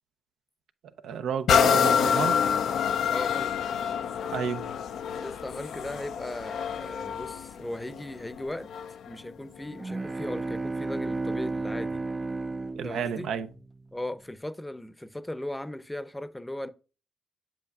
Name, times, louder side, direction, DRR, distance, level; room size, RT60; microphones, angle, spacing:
voice 1, 1.0-2.4 4.3-4.6 12.8-13.5, right 7 dB, 80° right, 0.5 m, -31 dB
sound 1, 1.5-9.1 9.7-9.8, left 8 dB, 75° left, 0.4 m, -27 dB
voice 2, 3.1-3.5 5.2-8.7 9.0-12.0 12.8-13.3 13.9-16.7, left 1 dB, 10° left, 0.7 m, -37 dB
sound 2, 9.7-13.8, right 3 dB, 30° right, 0.4 m, -33 dB
7.8 x 6.9 x 2.3 m
supercardioid pair, 50°, 0 cm